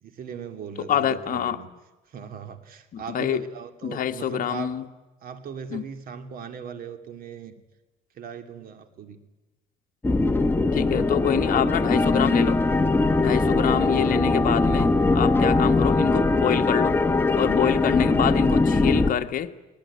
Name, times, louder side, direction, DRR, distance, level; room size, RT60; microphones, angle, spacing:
voice 1, 0.0-1.7 2.1-4.7 5.2-7.5 8.1-9.2, right 7 dB, 60° right, 8 dB, 2.5 m, -38 dB
voice 2, 0.9-1.6 2.9-3.4 3.8-4.9 5.7-5.9 10.7-12.6 13.2-17.0 17.4-19.5, left 9 dB, 55° left, 7 dB, 1.3 m, -26 dB
sound 1, 10.0-19.1, left 3 dB, 10° left, 1.2 m, -21 dB
21.0 x 18.0 x 9.9 m, 1.1 s
cardioid pair, 110°, 17 cm